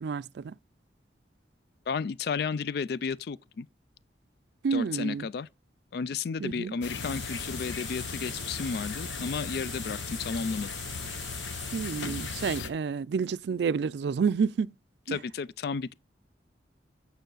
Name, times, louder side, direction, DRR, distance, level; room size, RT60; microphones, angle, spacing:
voice 1, 0.0-0.5 4.6-5.3 6.4-6.8 11.7-14.7 15.1-15.2, right 5 dB, 65° right, 0.3 m, -29 dB
voice 2, 1.9-3.7 4.7-5.5 5.9-10.7 15.1-15.9, left 5 dB, 60° left, 0.3 m, -33 dB
sound 1, 6.8-12.7, left 5 dB, 85° left, 0.8 m, -37 dB
sound 2, 7.0-12.6, right 2 dB, ahead, 1.0 m, -44 dB
9.1 x 5.7 x 3.9 m
head